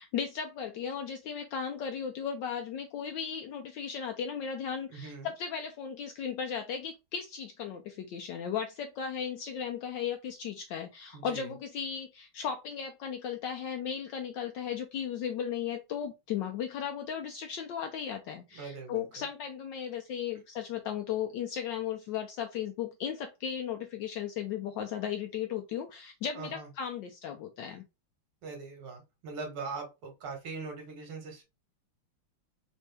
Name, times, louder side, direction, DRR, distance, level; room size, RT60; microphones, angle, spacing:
voice 1, 0.0-27.8, left 8 dB, 80° left, 1.0 m, -36 dB
voice 2, 4.9-5.3 11.1-11.5 18.6-19.0 26.3-26.7 27.7-27.8 28.4-31.4, right 4 dB, 80° right, 2.3 m, -41 dB
4.5 x 2.6 x 3.3 m
omnidirectional pair, 2.4 m